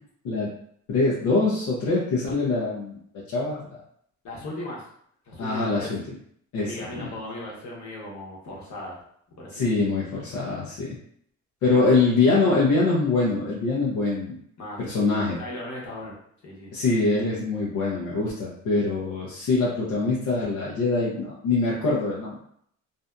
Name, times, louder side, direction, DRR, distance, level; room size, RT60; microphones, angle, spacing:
voice 1, 0.9-3.0 3.3-3.8 5.4-6.0 6.5-7.1 9.5-11.0 11.6-14.4 14.8-15.4 16.7-22.4, left 3 dB, 90° left, -6 dB, 0.7 m, -24 dB
voice 2, 4.2-4.8 5.3-5.9 6.6-9.0 9.4-9.9 11.6-12.0 14.6-14.8 15.4-16.2 16.4-16.7, left 1 dB, 70° left, -3 dB, 1.0 m, -37 dB
2.6 x 2.6 x 2.2 m, 0.67 s
cardioid pair, 90°, 30 cm